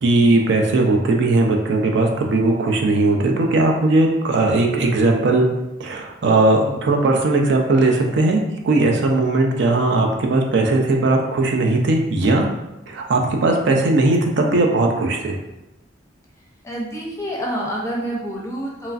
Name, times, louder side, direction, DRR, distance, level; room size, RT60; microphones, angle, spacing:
voice 1, 0.0-5.5 5.8-12.5 12.9-15.4, right 2 dB, 65° right, 2 dB, 0.4 m, -18 dB
voice 2, 16.6-18.9, equal, 15° left, -3 dB, 0.5 m, -28 dB
3.0 x 2.5 x 2.3 m, 0.95 s
head